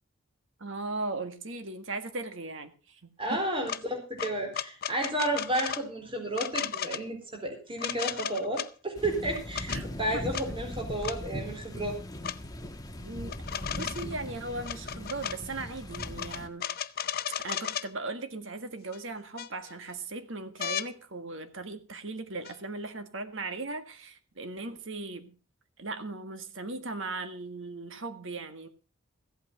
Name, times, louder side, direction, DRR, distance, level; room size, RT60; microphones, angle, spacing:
voice 1, 0.6-3.4 9.7-9.9 10.1-10.2 13.0-16.7 17.4-25.3 25.8-28.7, right 3 dB, 65° right, 1.7 m, -38 dB
voice 2, 3.2-12.0, right 1 dB, 25° right, 4.0 m, -32 dB
sound 1, 3.7-3.8 4.2-5.8 6.3-7.0 7.8-8.7 9.3-9.8 10.3-10.5 11.0-11.2 12.2-12.4 13.3-14.1 14.6-15.4 15.9-17.9 18.9-19.0 19.4-19.9 20.6-20.9 22.4-22.6, left 9 dB, 45° left, 0.6 m, -35 dB
sound 2, 9.0-16.5, left 1 dB, 20° left, 1.2 m, -39 dB
15.5 x 8.4 x 5.9 m
head